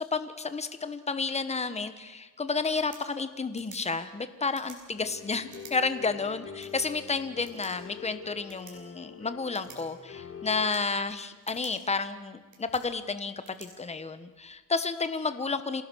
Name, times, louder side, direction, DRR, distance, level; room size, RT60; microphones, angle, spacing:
voice 1, 0.0-15.8, left 4 dB, 20° left, 11 dB, 1.3 m, -31 dB
sound 1, 2.6-14.6, right 5 dB, 60° right, 6.0 m, -55 dB
sound 2, 4.9-10.7, left 7 dB, 40° left, 2.3 m, -45 dB
27.0 x 17.5 x 6.4 m, 1.3 s
cardioid pair, 115°, 33 cm